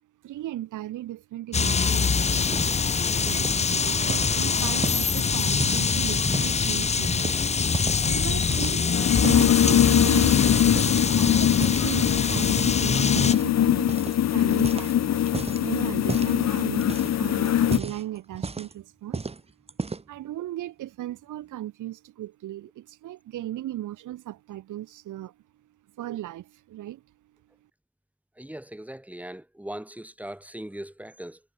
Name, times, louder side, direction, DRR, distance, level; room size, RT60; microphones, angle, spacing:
voice 1, 0.2-2.7 3.2-7.3 8.0-10.6 11.0-13.9 14.3-19.3 20.1-25.4 26.0-27.0, right 14 dB, 80° right, 4.2 m, -37 dB
sound 1, 1.5-13.3, left 5 dB, 20° left, 0.6 m, -24 dB
sound 2, 2.5-2.9 3.2-3.6 4.1-6.6 7.0-8.1 8.4-9.6 10.0-10.5 10.8-12.7 13.2-13.5 13.9-14.2 14.5-15.6 16.1-16.4 16.8-17.2 17.6-18.8 19.1-19.4 19.7-20.2, right 4 dB, 20° right, 1.4 m, -34 dB
sound 3, 8.1-17.8, left 11 dB, 60° left, 1.4 m, -22 dB
voice 2, 28.4-31.4, right 1 dB, 5° right, 5.7 m, -39 dB
cardioid pair, 90°, 30 cm